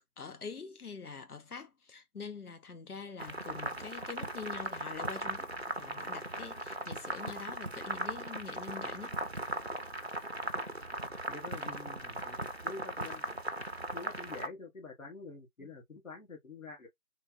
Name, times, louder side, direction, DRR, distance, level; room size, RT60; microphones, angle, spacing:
voice 1, 0.2-9.2 15.6-15.7, left 5 dB, 80° left, 1.0 m, -45 dB
sound 1, 3.2-14.5, right 1 dB, 45° right, 0.5 m, -38 dB
voice 2, 11.3-13.2 13.9-16.9, left 3 dB, 60° left, 1.8 m, -47 dB
3.3 x 3.0 x 2.6 m
figure-of-eight pair, 175°, 44 cm